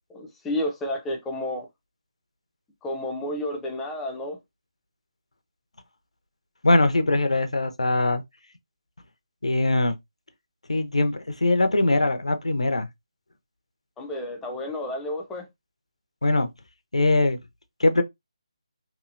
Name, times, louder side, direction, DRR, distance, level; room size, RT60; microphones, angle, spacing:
voice 1, 0.1-1.7 2.8-4.4 14.0-15.5, left 1 dB, 5° left, 0.6 m, -31 dB
voice 2, 6.6-8.2 9.4-9.9 10.7-12.9 16.2-16.5 16.9-17.4 17.8-18.0, left 2 dB, 85° left, 0.7 m, -21 dB
3.0 x 2.7 x 2.5 m
figure-of-eight pair, 155°, 3 cm